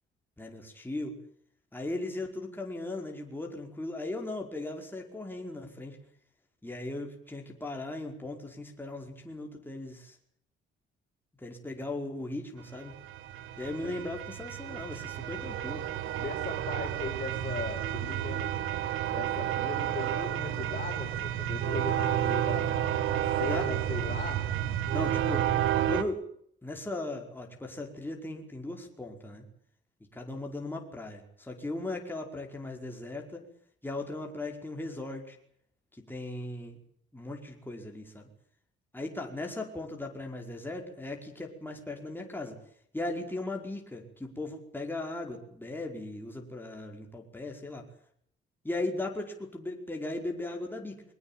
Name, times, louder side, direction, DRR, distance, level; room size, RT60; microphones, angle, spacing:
voice 1, 0.4-1.2 1.7-6.0 6.6-10.2 11.4-13.0 13.6-15.9 23.4-23.7 24.9-25.5 25.8-26.2 26.6-29.5 30.1-33.4 33.8-35.4 35.9-36.8 37.1-38.3 38.9-42.6 42.9-47.8 48.6-51.0, left 2 dB, 10° left, 2 dB, 5.1 m, -37 dB
sound 1, 12.8-26.0, right 11 dB, 90° right, 1.9 m, -31 dB
voice 2, 16.1-18.4 19.1-24.4, left 4 dB, 40° left, -2 dB, 7.1 m, -39 dB
23.0 x 19.0 x 9.1 m, 0.66 s
cardioid pair, 90°, 20 cm